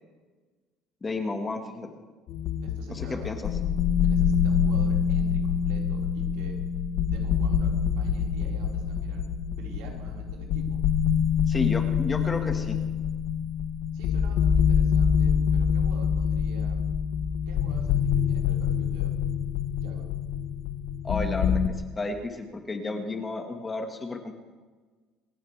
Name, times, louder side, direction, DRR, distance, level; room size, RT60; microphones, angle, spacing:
voice 1, 1.0-1.9 2.9-3.5 11.5-12.8 21.0-21.6 21.9-24.3, left 3 dB, 15° left, 4 dB, 1.6 m, -32 dB
sound 1, 2.3-21.7, left 7 dB, 50° left, 1.1 m, -25 dB
voice 2, 2.6-3.4 4.0-6.6 7.1-9.2 9.6-10.8 13.9-16.7 17.5-18.0 18.3-19.1 19.8-20.0, right 3 dB, 85° right, -2 dB, 4.6 m, -47 dB
27.0 x 15.5 x 3.4 m, 1.4 s
cardioid pair, 165°, 0 cm